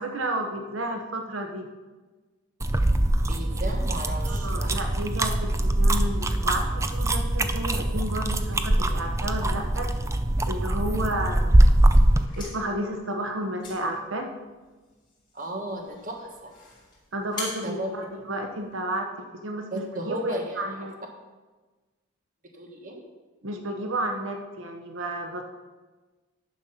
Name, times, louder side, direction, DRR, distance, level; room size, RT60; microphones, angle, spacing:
voice 1, 0.0-1.7 4.3-9.9 10.5-11.7 12.2-14.3 17.1-20.9 23.4-25.4, right 1 dB, 85° right, 4 dB, 1.1 m, -32 dB
sound 1, 2.6-12.3, right 1 dB, 15° right, 0.4 m, -22 dB
voice 2, 3.3-5.0 10.9-11.0 15.3-16.5 17.6-17.9 19.7-20.8 22.5-23.0, right 1 dB, 40° right, 2 dB, 1.4 m, -35 dB
sound 2, 12.1-18.8, left 2 dB, 25° left, 3.0 m, -44 dB
10.5 x 6.1 x 5.6 m, 1.3 s
head